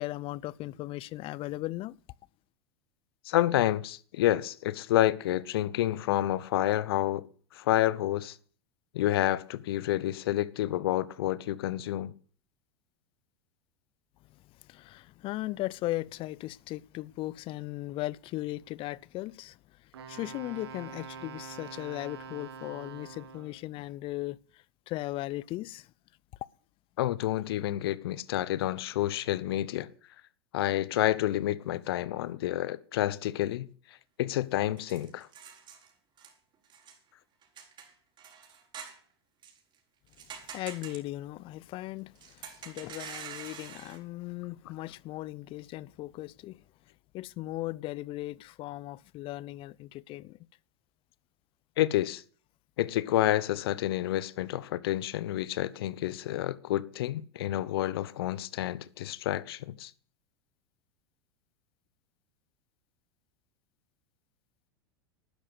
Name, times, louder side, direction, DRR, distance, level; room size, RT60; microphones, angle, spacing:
voice 1, 0.0-1.9 14.7-19.6 20.1-24.4 24.9-25.8 40.5-42.1 42.4-46.6 47.1-50.4, left 17 dB, 40° left, 0.6 m, -37 dB
voice 2, 3.2-7.3 7.5-8.4 8.9-12.1 27.0-29.9 30.5-33.7 34.2-35.3 51.8-52.2 52.8-59.9, left 14 dB, 65° left, 1.0 m, -29 dB
Wind instrument woodwind instrument, 19.9-23.7, right 6 dB, 70° right, 2.4 m, -45 dB
sound 1, 34.8-35.9 36.2-36.3 36.7-37.0 37.4-39.0 39.4-39.6 40.1-41.0 42.1-44.0, right 7 dB, 35° right, 5.5 m, -46 dB
12.5 x 10.5 x 8.1 m
figure-of-eight pair, 85°, 14 cm